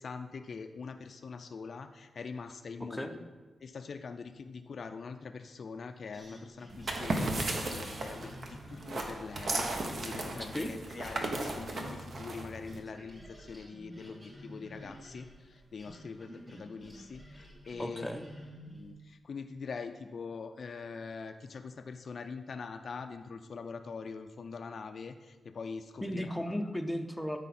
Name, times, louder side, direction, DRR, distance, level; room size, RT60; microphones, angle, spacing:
voice 1, 0.0-3.2 3.6-18.1 18.7-26.5, left 5 dB, 60° left, 8 dB, 0.4 m, -43 dB
voice 2, 2.8-3.1 10.5-10.7 17.8-18.2 26.0-27.4, equal, 5° left, 4 dB, 0.6 m, -35 dB
sound 1, 6.1-12.4 12.7-18.9, equal, 25° right, 2.8 m, -50 dB
sound 2, 6.7-12.8, right 2 dB, 55° right, 1.1 m, -35 dB
13.0 x 4.9 x 4.2 m, 1.3 s
wide cardioid pair, 115°, 0 cm